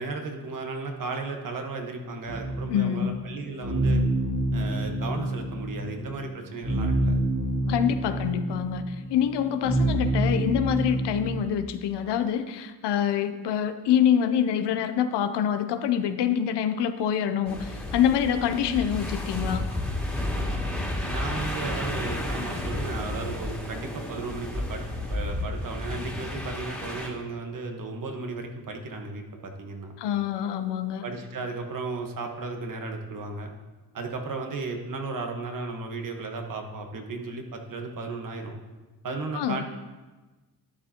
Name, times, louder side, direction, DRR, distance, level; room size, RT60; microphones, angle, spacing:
voice 1, 0.0-4.0 4.5-7.2 21.0-29.9 31.0-33.5 33.9-38.6 39.0-39.6, right 3 dB, 55° right, 4 dB, 1.4 m, -35 dB
sound 1, 2.3-11.4, right 1 dB, 35° right, 2.1 m, -28 dB
voice 2, 2.7-3.2 7.7-19.6 30.0-31.0 39.3-39.6, left 9 dB, 90° left, 10 dB, 0.7 m, -26 dB
sound 2, 17.4-27.1, left 1 dB, ahead, 2.3 m, -32 dB
12.0 x 9.4 x 2.9 m, 1.2 s
cardioid pair, 100°, 40 cm